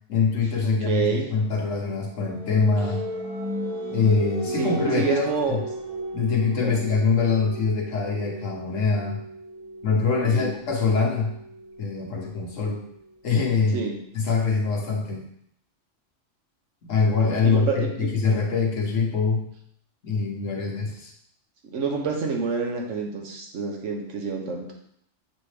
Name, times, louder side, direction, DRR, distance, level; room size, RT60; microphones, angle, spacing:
voice 1, 0.1-3.0 3.9-5.6 6.1-9.2 9.8-11.4 11.8-12.8 13.2-13.9 14.1-15.3 16.8-17.7 18.0-19.5 20.0-21.1, left 4 dB, 80° left, -1 dB, 1.5 m, -24 dB
voice 2, 0.6-1.3 4.5-5.6 6.5-6.9 10.2-10.5 13.7-14.0 17.4-18.1 21.7-24.7, right 5 dB, 75° right, 1 dB, 1.3 m, -28 dB
sound 1, 1.4-12.9, right 1 dB, 25° right, 1.0 m, -36 dB
7.2 x 4.0 x 3.3 m, 0.70 s
omnidirectional pair, 1.3 m